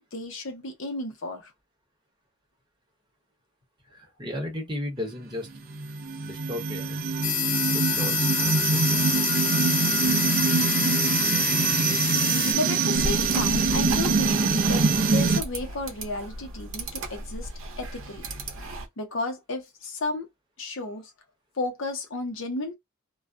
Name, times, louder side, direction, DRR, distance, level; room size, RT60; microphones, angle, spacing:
voice 1, 0.1-1.5 12.5-17.5 17.8-18.2 19.0-20.3 20.6-21.1 21.5-22.7, left 2 dB, 60° left, 0.7 m, -33 dB
voice 2, 3.9-5.5 6.2-7.2 7.6-9.1, left 1 dB, 20° right, 0.9 m, -35 dB
sound 1, 5.6-15.4, right 5 dB, 40° right, 0.4 m, -24 dB
sound 2, 7.2-12.5, left 11 dB, 45° left, 0.3 m, -27 dB
sound 3, 12.9-18.9, right 2 dB, 65° right, 0.8 m, -35 dB
2.3 x 2.1 x 2.4 m
head